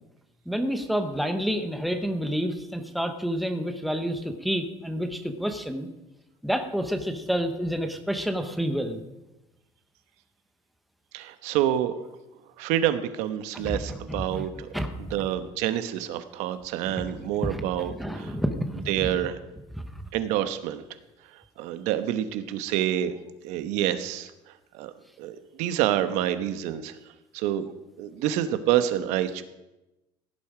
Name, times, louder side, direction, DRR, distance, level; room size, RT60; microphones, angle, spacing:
voice 1, 0.5-5.9 6.4-9.0 13.5-14.5 14.7-15.1 16.9-19.2 19.8-20.0, equal, ahead, 6 dB, 0.9 m, -29 dB
voice 2, 11.1-12.1 12.6-14.7 15.1-18.4 18.9-19.4 20.1-20.8 21.6-23.2 23.4-24.3 24.7-24.9 25.2-27.0 27.3-27.6 28.0-29.4, right 11 dB, 90° right, 11 dB, 1.1 m, -27 dB
16.5 x 10.5 x 5.0 m, 0.98 s
cardioid pair, 180°, 11 cm